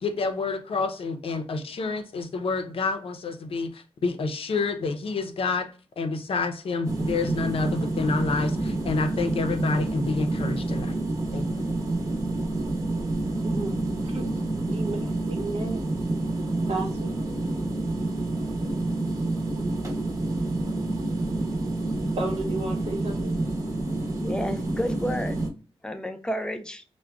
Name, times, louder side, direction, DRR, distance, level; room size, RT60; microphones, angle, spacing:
voice 1, 0.0-5.7 6.0-11.0 11.3-11.6, left 3 dB, 65° left, 7 dB, 0.5 m, -28 dB
sound 1, 6.8-25.5, right 2 dB, 35° right, 0.8 m, -28 dB
voice 2, 14.7-15.9 16.7-17.1 22.2-23.3, right 2 dB, 85° right, 2 dB, 0.8 m, -32 dB
voice 3, 24.2-25.4 25.8-26.8, equal, 10° left, 8 dB, 0.3 m, -31 dB
4.7 x 2.1 x 2.2 m, 0.39 s
wide cardioid pair, 130°, 10 cm